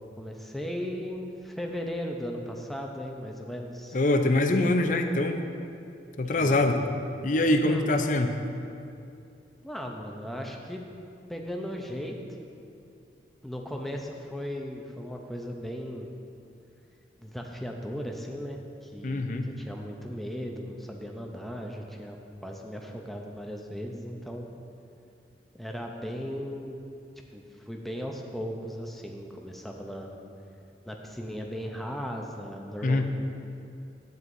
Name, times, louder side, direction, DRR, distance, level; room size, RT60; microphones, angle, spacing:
voice 1, 0.2-4.0 6.2-6.7 7.6-7.9 9.6-10.9 11.3-12.2 13.4-16.1 17.2-22.2 22.4-24.5 25.5-26.8 27.3-30.1 30.9-33.0, equal, ahead, 1 dB, 0.6 m, -37 dB
voice 2, 3.9-5.4 6.2-6.8 7.2-8.3 19.0-19.5 32.8-33.0, left 2 dB, 45° left, 5 dB, 0.6 m, -24 dB
12.5 x 9.3 x 2.6 m, 2.6 s
head